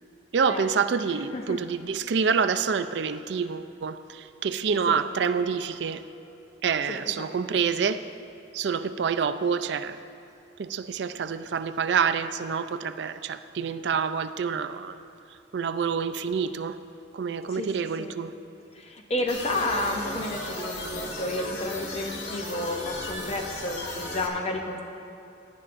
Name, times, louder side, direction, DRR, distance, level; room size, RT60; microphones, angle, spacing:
voice 1, 0.3-6.0 6.6-8.0 8.5-10.0 10.6-15.0 15.5-16.8 17.1-18.3, right 6 dB, 65° right, 0.4 m, -27 dB
voice 2, 6.9-7.6 17.5-17.7 18.0-18.2 18.7-24.8, left 1 dB, 35° left, 0.6 m, -31 dB
sound 1, 19.3-24.3, left 1 dB, 75° left, 1.4 m, -35 dB
17.5 x 11.0 x 2.5 m
head